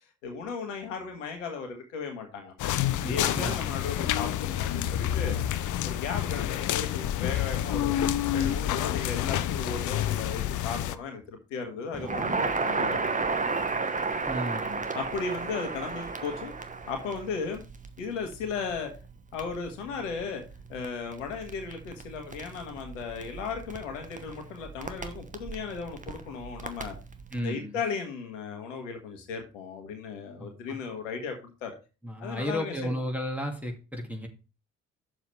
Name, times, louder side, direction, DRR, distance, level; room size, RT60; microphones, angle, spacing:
voice 1, 0.0-2.5 3.0-5.4 5.8-8.0 8.3-13.1 14.9-16.5 16.9-17.6 18.0-18.9 19.3-20.4 20.7-27.0 27.4-31.3 31.6-31.7 32.2-32.9, left 5 dB, 80° left, 4 dB, 1.4 m, -36 dB
sound 1, 2.6-10.9, left 11 dB, 55° left, 0.7 m, -28 dB
voice 2, 3.0-3.7 14.3-14.9 27.3-27.8 30.4-30.8 32.0-34.3, equal, 5° right, 2 dB, 2.3 m, -34 dB
Crackle, 11.9-27.4, right 4 dB, 20° right, 1.2 m, -34 dB
8.7 x 6.9 x 3.3 m, 0.32 s
hypercardioid pair, 45°, 37 cm